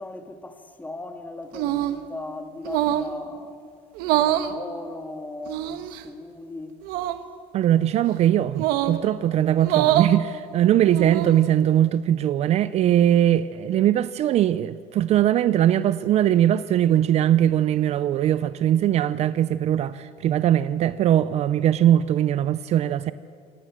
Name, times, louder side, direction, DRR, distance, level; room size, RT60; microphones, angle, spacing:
voice 1, 0.0-3.6 4.1-6.8, left 2 dB, 10° left, 2.1 m, -37 dB
sound 1, 1.5-2.0 2.6-3.1 4.0-4.5 5.5-6.0 6.8-7.2 8.5-9.0 9.6-10.1 10.8-11.4, right 13 dB, 75° right, 1.5 m, -24 dB
voice 2, 7.5-23.1, right 11 dB, 45° right, 0.6 m, -20 dB
26.5 x 20.0 x 7.5 m
cardioid pair, 140°, 16 cm